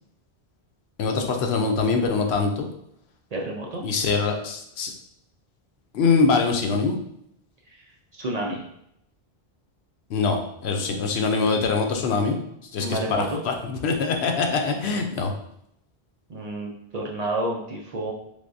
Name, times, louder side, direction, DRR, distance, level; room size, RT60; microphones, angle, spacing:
voice 1, 1.0-2.7 3.8-4.9 5.9-7.0 10.1-12.4 12.7-15.3, left 4 dB, 80° left, 4 dB, 0.8 m, -23 dB
voice 2, 3.3-3.8 7.7-7.8 8.1-8.6 12.8-13.4 16.3-18.1, right 1 dB, 50° right, -2 dB, 0.5 m, -30 dB
3.4 x 3.4 x 2.6 m, 0.75 s
omnidirectional pair, 1.1 m